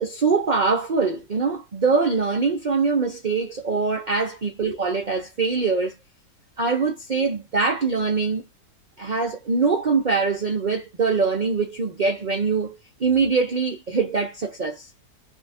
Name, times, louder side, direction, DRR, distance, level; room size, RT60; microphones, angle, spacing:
voice 1, 0.0-5.9 6.6-8.4 9.0-14.9, right 4 dB, 55° right, 0.5 m, -23 dB
2.7 x 2.3 x 4.1 m
omnidirectional pair, 1.7 m